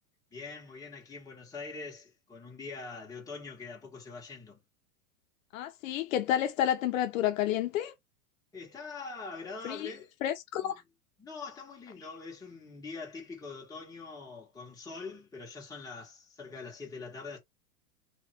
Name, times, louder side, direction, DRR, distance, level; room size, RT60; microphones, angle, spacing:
voice 1, 0.3-4.6 8.5-10.1 10.6-10.8 11.2-17.4, left 4 dB, 10° left, 1.7 m, -43 dB
voice 2, 5.5-7.9 9.6-9.9 10.2-10.7, left 11 dB, 65° left, 0.9 m, -30 dB
3.2 x 3.1 x 4.4 m
supercardioid pair, 155°, 44 cm